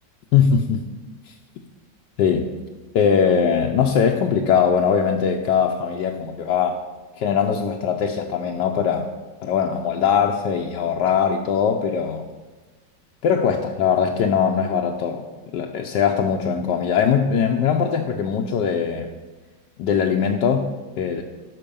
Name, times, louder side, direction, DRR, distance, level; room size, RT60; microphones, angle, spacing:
voice 1, 0.3-0.8 1.3-1.4 2.2-2.5 2.9-6.8 7.2-9.1 9.4-12.3 13.2-15.2 15.5-19.1 19.8-21.2, left 7 dB, 75° left, 2 dB, 1.3 m, -21 dB
12.5 x 6.1 x 5.3 m, 1.3 s
omnidirectional pair, 2.0 m